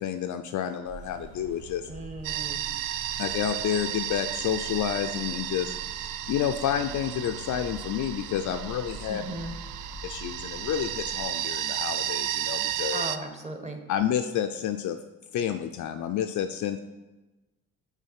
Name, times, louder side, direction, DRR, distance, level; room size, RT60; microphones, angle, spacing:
voice 1, 0.0-1.8 3.2-5.7 6.3-9.2 10.0-13.0 13.9-15.0 15.3-16.8, left 9 dB, 45° left, 7 dB, 0.5 m, -29 dB
sound 1, 0.8-11.2, right 2 dB, 85° right, 1.4 m, -45 dB
voice 2, 1.9-2.6 9.1-9.5 12.9-13.8, right 1 dB, 15° right, 5 dB, 1.2 m, -36 dB
sound 2, 2.2-13.2, right 12 dB, 50° right, 0.5 m, -33 dB
8.0 x 3.8 x 5.7 m, 1.1 s
hypercardioid pair, 60°, 41 cm